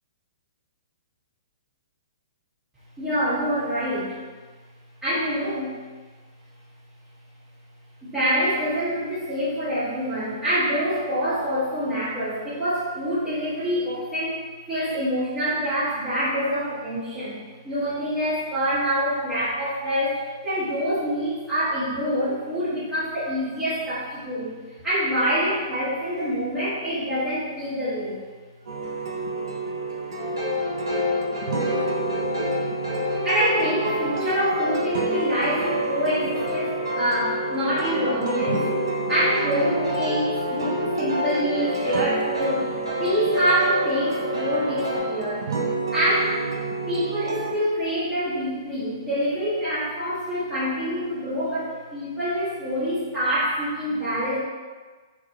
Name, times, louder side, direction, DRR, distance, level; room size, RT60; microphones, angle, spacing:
voice 1, 3.0-4.2 5.0-5.7 8.0-14.4 14.7-17.4 17.6-24.6 24.8-28.2 33.0-38.7 39.1-45.5 45.9-46.4 46.9-54.4, equal, 10° right, -14 dB, 1.0 m, -26 dB
sound 1, 28.7-47.5, right 3 dB, 65° right, 0.4 m, -30 dB
sound 2, 30.1-45.0, left 2 dB, 90° right, 0.9 m, -29 dB
2.3 x 2.1 x 2.7 m, 1.4 s
figure-of-eight pair, 120°, 2 cm